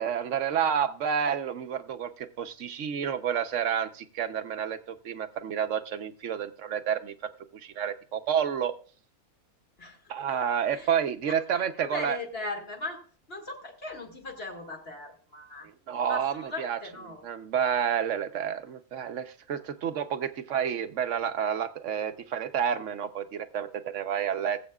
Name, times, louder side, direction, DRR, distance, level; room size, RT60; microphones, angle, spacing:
voice 1, 0.0-7.1 7.5-8.7 10.1-12.2 15.9-16.8 17.2-24.6, right 8 dB, 60° right, 9 dB, 1.1 m, -29 dB
voice 2, 9.8-10.4 10.7-10.9 11.2-13.0 13.3-15.7 16.1-17.2, left 2 dB, 40° left, 2 dB, 2.3 m, -39 dB
19.5 x 8.0 x 2.4 m, 0.40 s
omnidirectional pair, 1.5 m